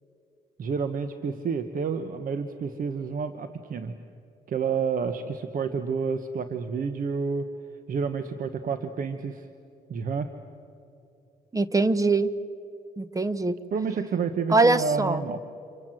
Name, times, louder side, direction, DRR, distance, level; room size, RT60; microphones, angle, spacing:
voice 1, 0.6-3.9 4.5-7.5 7.9-9.5 9.9-10.3 13.7-15.4, right 5 dB, 60° right, 9 dB, 1.2 m, -29 dB
voice 2, 11.5-12.3 13.0-13.6 14.5-15.2, right 3 dB, 20° right, 15 dB, 1.1 m, -22 dB
28.5 x 24.5 x 7.7 m, 2.7 s
cardioid pair, 80°, 16 cm